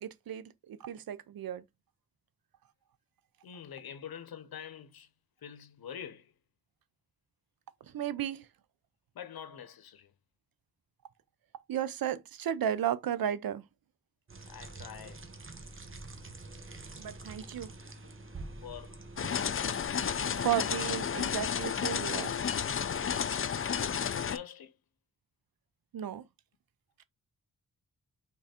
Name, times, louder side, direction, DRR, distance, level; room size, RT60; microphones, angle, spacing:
voice 1, 0.0-1.6 7.9-8.5 11.7-13.6 17.0-17.7 20.3-22.3 25.9-26.2, right 10 dB, 75° right, 0.5 m, -34 dB
voice 2, 3.4-5.1 5.4-6.3 9.1-10.1 14.5-15.2 18.6-19.0 23.9-24.8, left 8 dB, 90° left, 0.7 m, -45 dB
sound 1, 14.3-19.3, right 3 dB, 35° right, 1.0 m, -46 dB
sound 2, 19.2-24.4, left 7 dB, 40° left, 0.4 m, -32 dB
3.7 x 3.3 x 4.2 m
cardioid pair, 50°, 36 cm